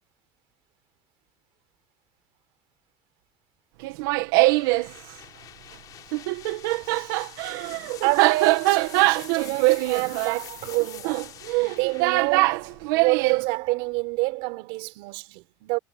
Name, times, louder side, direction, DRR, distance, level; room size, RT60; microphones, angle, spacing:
Laughter, 3.8-4.9 6.1-13.4, right 21 dB, 85° right, 2.1 m, -22 dB
sound 1, 4.4-14.1, left 12 dB, 35° left, 4.0 m, -45 dB
voice 1, 6.9-7.2 8.0-11.3 11.6-15.8, right 23 dB, 60° right, 4.6 m, -28 dB
cardioid pair, 175°, 11 cm